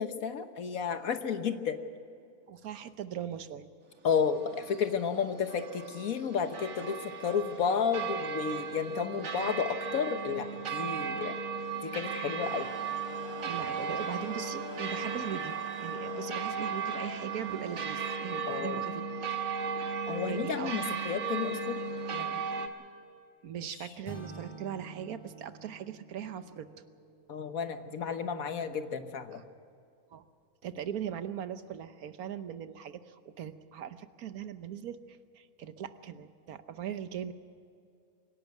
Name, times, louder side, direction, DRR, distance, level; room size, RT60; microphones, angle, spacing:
voice 1, 0.0-1.8 4.0-11.3 11.8-12.7 18.5-18.8 20.1-21.7 22.1-22.4 27.3-29.4, left 6 dB, 70° left, 9 dB, 1.6 m, -32 dB
voice 2, 2.5-3.7 13.4-19.1 20.3-20.8 22.4-22.5 23.4-26.7 29.3-29.4 30.1-30.2 30.6-37.3, right 9 dB, 80° right, 11 dB, 1.4 m, -40 dB
sound 1, 4.1-22.7, right 5 dB, 65° right, 1.8 m, -36 dB
sound 2, 12.4-18.2, right 2 dB, 20° right, 0.8 m, -47 dB
sound 3, 24.0-28.1, right 2 dB, 20° left, 3.3 m, -49 dB
25.0 x 11.0 x 9.3 m, 2.4 s
omnidirectional pair, 1.5 m